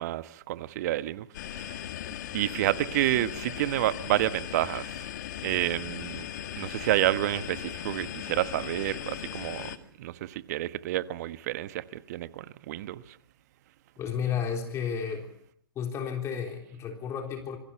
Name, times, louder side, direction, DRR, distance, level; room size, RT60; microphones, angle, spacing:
voice 1, 0.0-1.8 2.3-5.1 5.4-6.3 6.6-9.7 10.0-13.0, right 14 dB, 45° right, 1.2 m, -29 dB
sound 1, 1.3-9.8, left 11 dB, 50° left, 2.0 m, -38 dB
voice 2, 14.0-15.3 15.8-17.6, left 7 dB, 20° left, 3.6 m, -32 dB
27.0 x 23.0 x 5.8 m
figure-of-eight pair, 120°, 13 cm